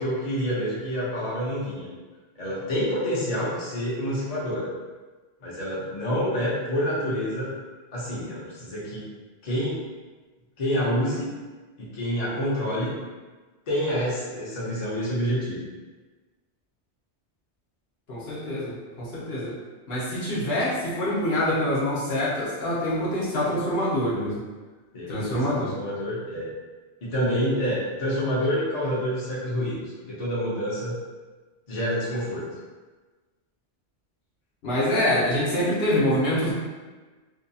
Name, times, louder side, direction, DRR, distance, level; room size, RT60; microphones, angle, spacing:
voice 1, 0.0-1.9 2.4-4.7 5.4-7.5 7.9-9.1 9.4-9.8 10.6-11.3 11.8-13.0 13.7-15.6 24.9-26.5 27.0-31.0 31.7-32.5, equal, 40° left, -7 dB, 0.7 m, -27 dB
voice 2, 18.1-19.6 19.9-24.4 25.1-25.7 34.6-36.5, left 1 dB, 65° left, -8 dB, 1.0 m, -25 dB
2.6 x 2.2 x 2.7 m, 1.3 s
omnidirectional pair, 1.2 m